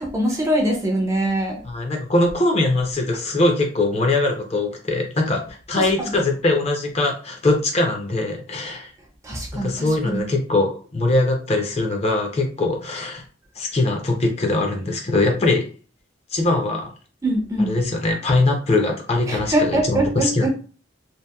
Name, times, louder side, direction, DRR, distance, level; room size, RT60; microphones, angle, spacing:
voice 1, 0.0-1.6 5.8-6.2 9.2-10.3 17.2-17.8 19.3-20.5, right 1 dB, 15° right, 1 dB, 0.4 m, -23 dB
voice 2, 1.6-8.9 9.6-13.2 13.6-15.6 16.3-16.9 17.6-20.5, left 2 dB, 35° left, 2 dB, 0.5 m, -21 dB
2.8 x 2.5 x 2.2 m, 0.38 s
head